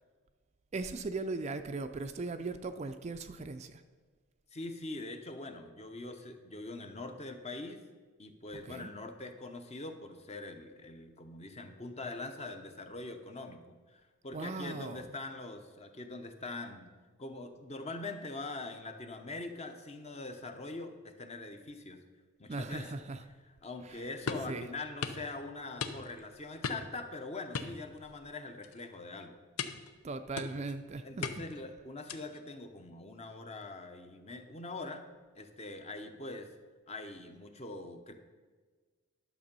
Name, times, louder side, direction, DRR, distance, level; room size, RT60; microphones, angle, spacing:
voice 1, 0.7-3.8 8.7-8.9 14.3-15.1 22.5-23.2 23.8-24.1 24.5-24.7 30.0-31.3, right 3 dB, 30° right, 9 dB, 0.4 m, -38 dB
voice 2, 4.5-7.8 8.2-16.9 17.2-22.0 22.4-23.0 23.6-29.4 31.0-35.1 35.3-36.5 36.9-38.1, left 2 dB, 30° left, 6 dB, 0.8 m, -43 dB
sound 1, 24.3-24.5 25.0-25.2 25.8-26.2 26.6-27.0 27.5-28.3 28.6-28.9 29.6-29.9 30.4-30.8 31.2-31.6 32.1-32.4, left 5 dB, 80° left, 0.7 m, -38 dB
11.5 x 6.8 x 5.4 m, 1.4 s
head